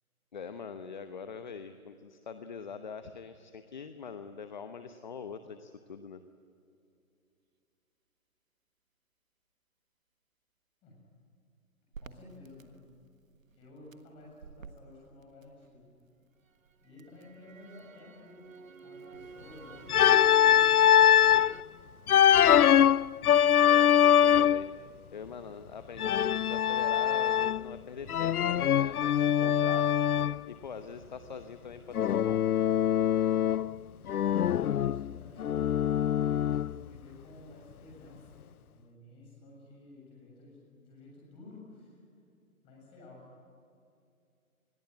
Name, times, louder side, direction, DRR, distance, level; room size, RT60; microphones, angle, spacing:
voice 1, 0.3-6.2 23.6-24.7 25.1-29.9 30.5-32.4, left 6 dB, 30° left, 9 dB, 1.0 m, -43 dB
voice 2, 10.8-11.1 12.0-12.8 13.5-15.9 16.8-18.5 18.8-21.0 34.2-35.5 36.1-42.0 42.6-43.3, left 2 dB, 10° left, -2 dB, 7.0 m, -53 dB
Crackle, 11.9-16.1 16.5-21.6, right 5 dB, 65° right, 1.6 m, -50 dB
Organ, 19.9-21.5 22.1-24.7 26.0-27.7 28.1-30.4 31.9-33.8 34.1-36.8, left 10 dB, 85° left, 0.6 m, -23 dB
28.5 x 21.5 x 9.5 m, 2.5 s
hypercardioid pair, 160°, 43 cm